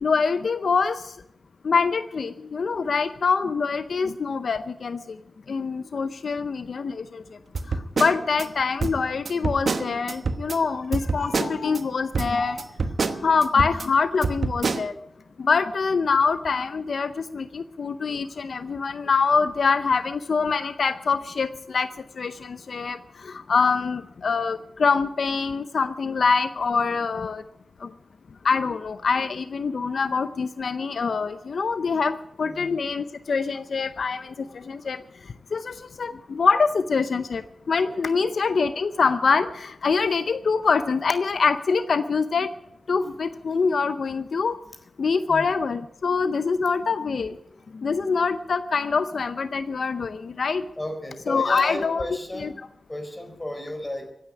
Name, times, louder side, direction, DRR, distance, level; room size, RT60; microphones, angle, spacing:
voice 1, 0.0-1.1 1.6-5.0 5.5-7.2 7.7-12.6 13.2-14.9 15.4-21.9 22.2-27.4 27.8-27.9 28.4-35.0 35.5-42.5 42.9-44.6 45.0-47.4 47.7-50.6 51.3-52.0 52.4-52.5, left 5 dB, 70° left, 12 dB, 0.6 m, -24 dB
sound 1, 7.5-8.4 8.8-10.6 10.9-11.8 12.1-13.9 14.2-14.8, right 4 dB, 65° right, 1.1 m, -27 dB
voice 2, 11.2-11.6 32.4-32.8 38.1-38.4 45.3-45.6 50.8-52.5 52.9-54.1, left 1 dB, 20° left, 5 dB, 4.0 m, -34 dB
15.5 x 9.4 x 9.7 m, 0.83 s
wide cardioid pair, 90°, 0 cm